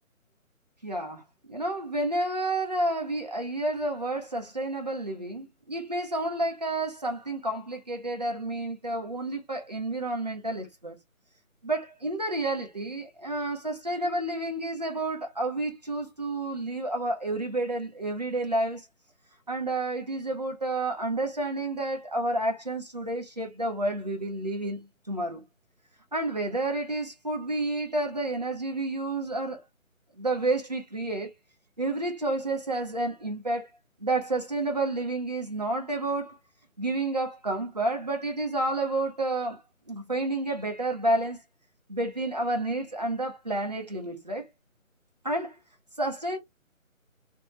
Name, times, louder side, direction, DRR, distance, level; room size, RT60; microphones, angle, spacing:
voice 1, 0.8-1.2 1.5-11.0 11.6-18.8 19.5-25.4 26.1-29.6 30.2-31.3 31.8-33.7 34.0-36.4 36.8-41.4 41.9-44.4 45.2-45.5 46.0-46.4, right 2 dB, 30° right, 0.6 m, -30 dB
3.0 x 2.1 x 3.0 m
figure-of-eight pair, 160°, 42 cm